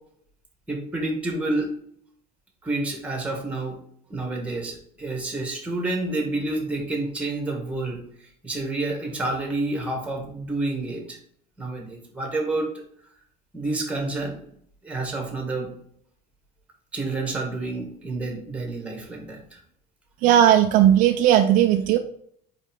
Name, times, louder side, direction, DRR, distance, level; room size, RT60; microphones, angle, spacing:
voice 1, 0.7-1.7 2.6-3.8 4.1-8.0 8.4-11.2 11.6-12.8 13.5-14.4 14.8-15.8 16.9-19.6, right 2 dB, 5° right, 2 dB, 1.4 m, -29 dB
voice 2, 20.2-22.0, right 11 dB, 50° right, 6 dB, 0.5 m, -17 dB
5.4 x 5.1 x 3.6 m, 0.64 s
cardioid pair, 170°, 17 cm